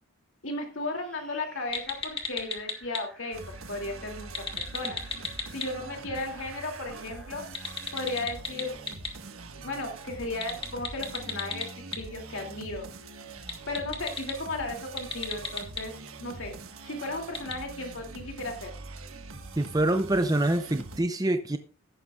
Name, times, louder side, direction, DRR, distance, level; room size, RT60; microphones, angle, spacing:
voice 1, 0.4-4.5 4.7-5.0 5.5-7.4 7.9-8.8 9.6-11.7 12.0-12.9 13.7-15.9 16.2-16.5 16.8-18.7, left 2 dB, 70° left, 2 dB, 2.6 m, -35 dB
sound 1, 0.6-8.3, right 1 dB, 5° left, 4.5 m, -55 dB
sound 2, 1.7-3.0 4.2-5.6 7.4-9.1 10.3-12.0 13.4-14.3 14.9-15.8 17.3-17.5, left 5 dB, 25° left, 1.6 m, -32 dB
sound 3, 3.3-21.0, right 3 dB, 85° right, 1.5 m, -44 dB
voice 2, 19.6-21.6, right 1 dB, 15° right, 8 dB, 0.6 m, -25 dB
14.5 x 11.5 x 2.4 m, 0.35 s
head